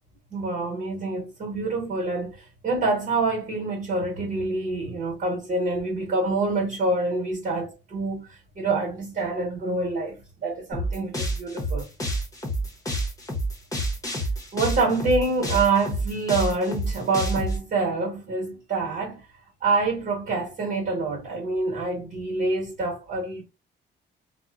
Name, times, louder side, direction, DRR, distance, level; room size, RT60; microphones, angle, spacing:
voice 1, 0.3-11.9 14.5-19.2 19.6-23.4, right 3 dB, 50° right, 1.3 m, -26 dB
sound 1, 10.7-17.6, right 1 dB, 15° left, 0.9 m, -28 dB
2.9 x 2.1 x 2.5 m
cardioid pair, 100°, 20 cm